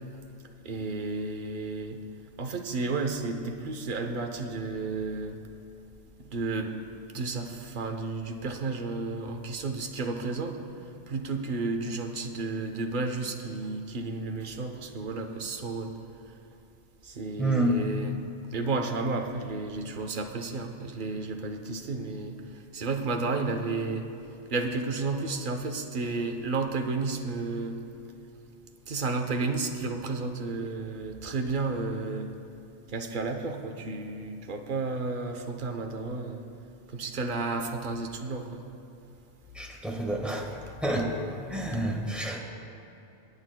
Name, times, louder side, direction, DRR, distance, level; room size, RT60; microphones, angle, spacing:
voice 1, 0.6-2.0 2.4-5.4 6.2-6.7 7.1-10.6 11.1-15.9 17.0-18.2 18.5-24.1 24.5-27.8 28.9-32.3 32.9-36.4 36.9-38.6, right 3 dB, 45° right, 4 dB, 0.9 m, -32 dB
voice 2, 17.4-17.8 39.5-40.6 40.8-41.1 41.5-42.4, right 1 dB, ahead, -1 dB, 1.3 m, -28 dB
21.5 x 9.5 x 2.2 m, 2.8 s
omnidirectional pair, 1.2 m